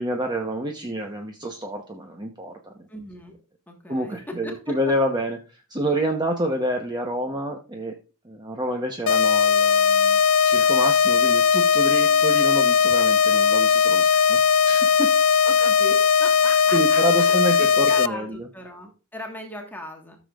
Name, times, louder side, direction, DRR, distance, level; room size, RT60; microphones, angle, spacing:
voice 1, 0.0-2.7 3.9-8.0 8.2-14.4 14.7-15.1 16.7-18.5, right 1 dB, 20° right, 3 dB, 0.9 m, -28 dB
voice 2, 2.9-3.4 3.7-4.7 15.4-20.2, left 1 dB, 10° left, 1 dB, 1.4 m, -38 dB
sound 1, 9.1-18.1, left 6 dB, 70° left, 0.4 m, -18 dB
13.5 x 7.1 x 2.4 m, 0.33 s
head